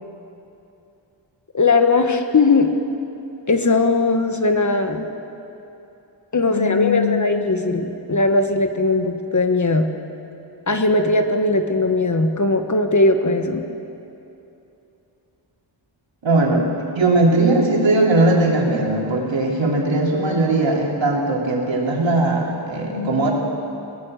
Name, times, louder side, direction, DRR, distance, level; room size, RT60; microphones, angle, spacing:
voice 1, 1.5-2.7 3.5-5.0 6.3-9.9 10.7-13.6, left 3 dB, 40° left, 6 dB, 1.5 m, -19 dB
voice 2, 6.4-7.1 16.2-16.7 17.0-23.3, right 2 dB, 70° right, -2 dB, 3.8 m, -19 dB
23.0 x 18.5 x 6.7 m, 2.9 s
wide cardioid pair, 95°, 47 cm